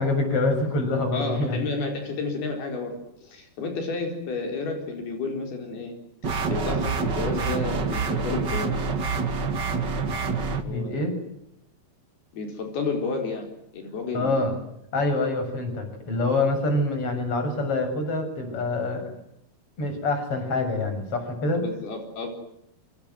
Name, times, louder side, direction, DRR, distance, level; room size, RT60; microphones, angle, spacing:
voice 1, 0.0-1.6 10.7-11.2 14.1-14.5 14.9-19.2 19.8-21.6, left 2 dB, 35° left, 7 dB, 7.8 m, -26 dB
voice 2, 1.1-6.0 6.5-8.8 10.6-11.0 12.3-14.6 21.5-22.3, left 3 dB, 80° left, 4 dB, 6.3 m, -31 dB
sound 1, 6.2-10.6, right 4 dB, 35° right, 2.0 m, -27 dB
27.0 x 26.5 x 7.8 m, 0.79 s
omnidirectional pair, 4.4 m